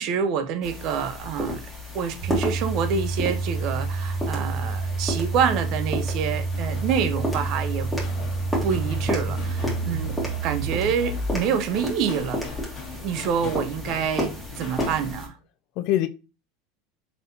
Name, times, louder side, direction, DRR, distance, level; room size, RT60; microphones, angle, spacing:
voice 1, 0.0-1.7 1.9-7.9 8.6-10.2 10.4-12.4 13.0-15.3, right 7 dB, 55° right, 0.7 m, -27 dB
sound 1, 0.6-15.3, left 1 dB, ahead, 1.5 m, -33 dB
sound 2, 2.2-11.5, right 3 dB, 85° right, 0.9 m, -29 dB
sound 3, 6.1-15.2, left 4 dB, 40° left, 1.4 m, -40 dB
voice 2, 9.6-10.2 13.4-13.6 15.8-16.1, left 13 dB, 60° left, 0.4 m, -27 dB
4.1 x 3.4 x 2.7 m
supercardioid pair, 125°, 0 cm